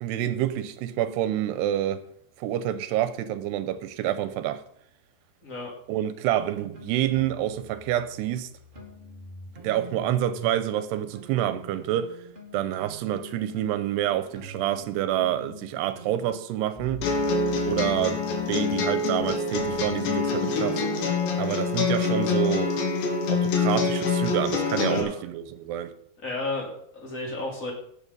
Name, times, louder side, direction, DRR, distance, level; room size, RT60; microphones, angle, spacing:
voice 1, 0.0-2.0 2.4-4.6 5.9-8.5 9.6-12.2 12.5-17.1 17.7-20.8 21.4-22.7 23.3-25.9, right 12 dB, 90° right, 2.9 m, -28 dB
sound 1, 6.5-10.6 10.9-20.4, right 1 dB, 20° right, 1.6 m, -44 dB
sound 2, 17.0-25.0, left 4 dB, 80° left, 3.8 m, -25 dB
voice 2, 26.2-27.7, left 2 dB, 20° left, 3.2 m, -32 dB
17.5 x 7.1 x 5.5 m
omnidirectional pair, 4.8 m